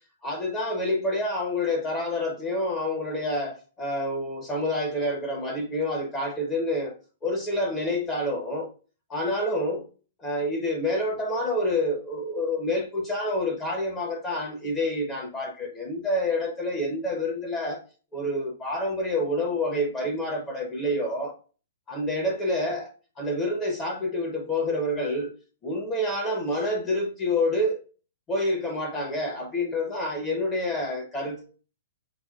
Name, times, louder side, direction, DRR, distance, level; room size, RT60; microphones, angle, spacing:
voice 1, 0.2-6.9 7.2-8.7 9.1-9.8 10.2-17.8 18.1-21.3 21.9-22.9 23.2-25.3 25.6-27.8 28.3-31.6, left 1 dB, 20° left, 1.0 m, -28 dB
5.9 x 2.2 x 2.4 m
hypercardioid pair, 140°, 0 cm